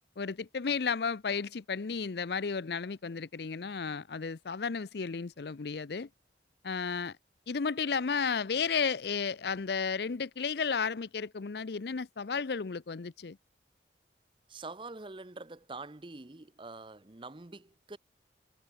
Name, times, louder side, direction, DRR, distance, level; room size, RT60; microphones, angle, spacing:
voice 1, 0.2-6.1 6.6-7.2 7.5-13.4, left 5 dB, 65° left, 0.6 m, -33 dB
voice 2, 14.5-18.0, right 3 dB, 30° right, 0.8 m, -45 dB
head